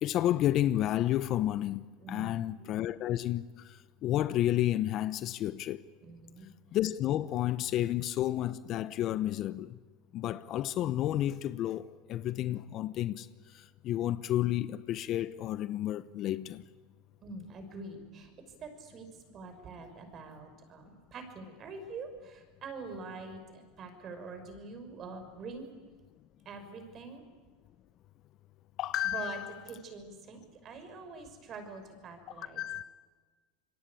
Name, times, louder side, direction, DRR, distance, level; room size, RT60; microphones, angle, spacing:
voice 1, 0.0-5.8 6.7-9.8 10.1-13.3 13.5-16.6 28.8-29.5 32.6-32.8, left 13 dB, 50° left, 0.8 m, -31 dB
voice 2, 2.0-2.4 6.0-6.5 17.2-18.3 18.6-25.7 26.5-27.2 29.0-29.4 29.6-32.6, right 4 dB, 40° right, 5.7 m, -45 dB
26.5 x 22.0 x 8.5 m
hypercardioid pair, 100°, 0 cm